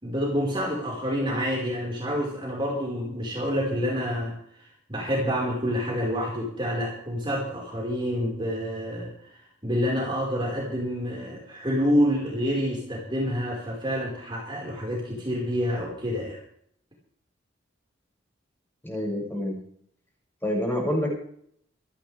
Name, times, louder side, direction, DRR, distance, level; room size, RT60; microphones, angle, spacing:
voice 1, 0.0-4.4 4.9-16.4, equal, 25° right, -3 dB, 5.1 m, -28 dB
voice 2, 18.8-19.6 20.4-21.1, left 1 dB, 10° left, -2 dB, 6.8 m, -27 dB
28.0 x 11.5 x 3.5 m, 0.66 s
head